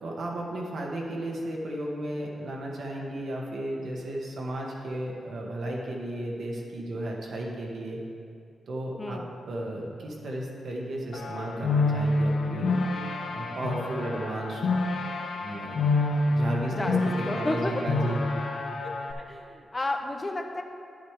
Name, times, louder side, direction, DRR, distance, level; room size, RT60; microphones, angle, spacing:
voice 1, 0.0-8.0 8.7-9.2 9.5-12.8 13.3-14.6 15.4-15.8 16.3-18.4, right 1 dB, 65° right, -2 dB, 1.4 m, -34 dB
sound 1, 11.1-19.1, left 2 dB, 65° left, 0.7 m, -28 dB
voice 2, 16.7-17.9 18.8-20.6, left 2 dB, 25° left, 4 dB, 0.7 m, -32 dB
10.5 x 8.0 x 3.3 m, 2.4 s
wide cardioid pair, 115°, 0 cm